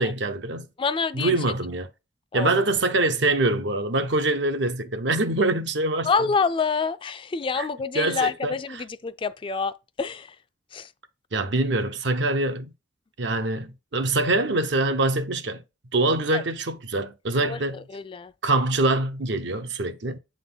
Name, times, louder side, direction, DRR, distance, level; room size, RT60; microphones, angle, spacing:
voice 1, 0.0-0.7 1.1-1.9 2.3-6.3 7.6-7.7 7.9-8.8 11.3-12.7 13.2-15.6 15.9-17.8 18.4-20.2, right 2 dB, 75° right, 0.8 m, -24 dB
voice 2, 0.8-1.4 2.3-2.6 6.0-9.7 10.0-10.3 10.7-10.9 16.3-16.4 17.4-18.3, left 5 dB, 30° left, 0.4 m, -27 dB
7.8 x 3.8 x 3.8 m
head